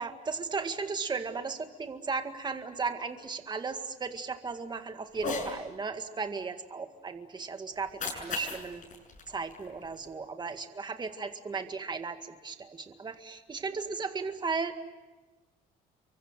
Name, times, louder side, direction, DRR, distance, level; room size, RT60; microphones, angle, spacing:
voice 1, 0.0-8.9 9.3-14.7, right 4 dB, 25° right, 7 dB, 2.0 m, -36 dB
Cat, 5.1-5.5 7.7-10.1, left 3 dB, 50° left, 7.6 m, -38 dB
29.5 x 24.5 x 7.7 m, 1.2 s
cardioid pair, 110°, 17 cm